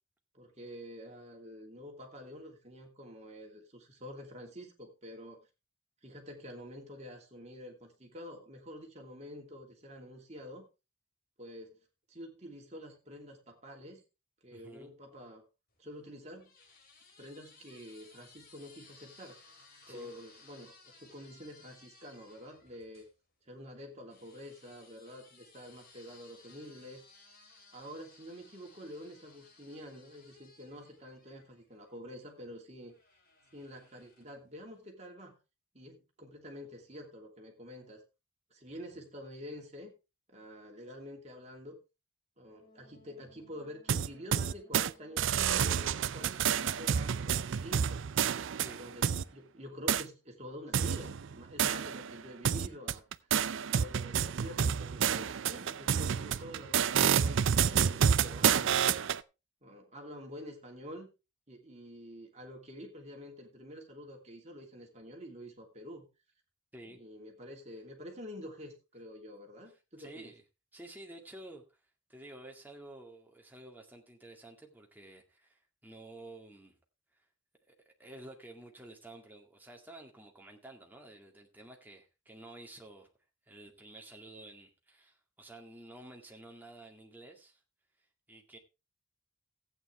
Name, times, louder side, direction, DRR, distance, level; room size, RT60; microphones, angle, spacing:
voice 1, 0.3-5.4 6.0-10.7 11.4-14.0 14.4-15.4 15.8-16.5 17.2-19.4 19.9-23.1 23.5-27.0 27.7-33.0 33.5-35.4 35.7-38.0 38.5-39.9 40.3-41.8 42.4-48.0 48.6-53.0 53.3-58.8 59.6-61.1 61.5-66.1 66.9-70.3, equal, 35° right, 2 dB, 2.8 m, -48 dB
voice 2, 14.5-14.9 19.9-20.1 48.6-48.8 66.7-67.0 70.0-70.4 70.7-71.8 72.1-76.8 77.1-77.3 77.7-83.1 83.4-87.6 88.0-88.6, right 1 dB, 10° right, 1 dB, 2.0 m, -51 dB
sound 1, 15.7-23.1 24.1-32.0 32.9-34.5, left 3 dB, 45° left, 3.2 m, -60 dB
Wind instrument woodwind instrument, 42.5-47.3, equal, 25° left, 5.9 m, -64 dB
sound 2, 43.9-44.9 45.2-49.2 49.9-50.0 50.7-52.1 52.5-59.2, right 8 dB, 70° right, 0.5 m, -29 dB
15.0 x 9.1 x 3.4 m, 0.27 s
head